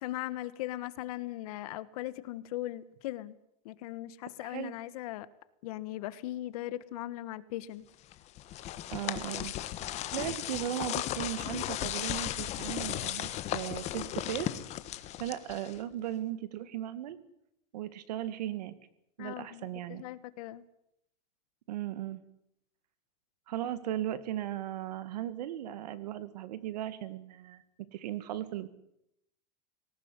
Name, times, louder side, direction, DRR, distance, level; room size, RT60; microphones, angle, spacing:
voice 1, 0.0-3.4 3.6-5.3 5.6-7.8 19.2-20.6, left 15 dB, 65° left, 16 dB, 1.4 m, -39 dB
voice 2, 4.4-4.8 8.9-9.5 10.1-14.5 15.2-17.2 17.7-18.7 19.2-20.0 21.7-22.2 23.5-27.6 27.9-28.7, right 12 dB, 85° right, 15 dB, 2.2 m, -37 dB
sound 1, 8.1-15.9, left 13 dB, 35° left, 1.4 m, -36 dB
19.5 x 18.5 x 9.7 m, 0.78 s
supercardioid pair, 150°, 20 cm